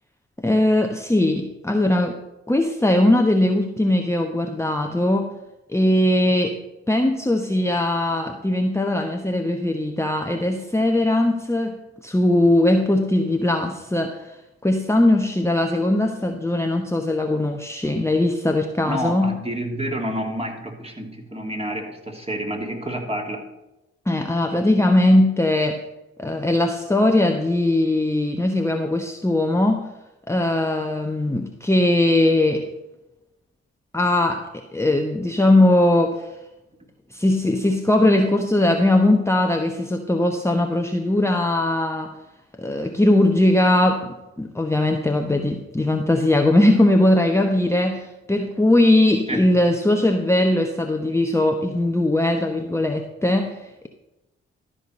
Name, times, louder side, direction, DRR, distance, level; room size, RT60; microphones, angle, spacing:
voice 1, 0.4-2.2 2.5-5.4 5.7-6.6 6.9-14.4 14.6-19.4 24.1-25.8 26.2-29.9 30.3-32.7 33.9-36.3 37.1-42.2 42.6-53.9, left 1 dB, 10° left, 4 dB, 1.1 m, -20 dB
voice 2, 18.9-23.5 49.3-49.4, equal, 20° right, 1 dB, 2.9 m, -29 dB
13.0 x 4.9 x 6.5 m, 0.96 s
hypercardioid pair, 40°, 30 cm